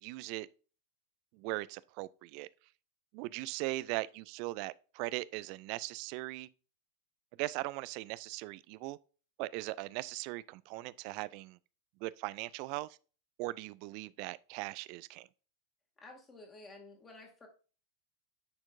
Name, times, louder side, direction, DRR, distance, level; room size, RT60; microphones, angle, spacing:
voice 1, 0.0-0.5 1.3-2.5 3.1-6.5 7.4-9.0 9.4-11.6 12.0-13.0 13.4-15.3, right 20 dB, 45° right, 0.3 m, -39 dB
voice 2, 16.0-17.5, left 2 dB, 20° left, 2.2 m, -52 dB
9.7 x 4.4 x 2.5 m
figure-of-eight pair, 90°, 0 cm